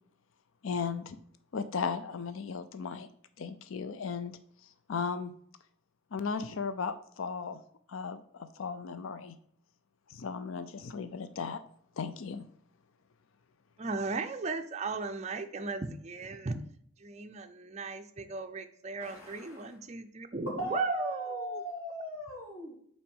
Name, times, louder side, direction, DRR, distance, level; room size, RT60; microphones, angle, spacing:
voice 1, 0.6-1.2 1.5-3.1 3.4-4.4 4.9-5.3 6.1-7.6 7.9-9.3 10.1-11.6 12.0-12.4, left 5 dB, 65° left, 0.4 m, -36 dB
voice 2, 13.8-16.7 17.0-21.6, right 3 dB, 30° right, 0.5 m, -36 dB
voice 3, 19.0-19.7 20.6-22.8, equal, 85° left, 2.7 m, -38 dB
5.6 x 4.3 x 5.4 m
head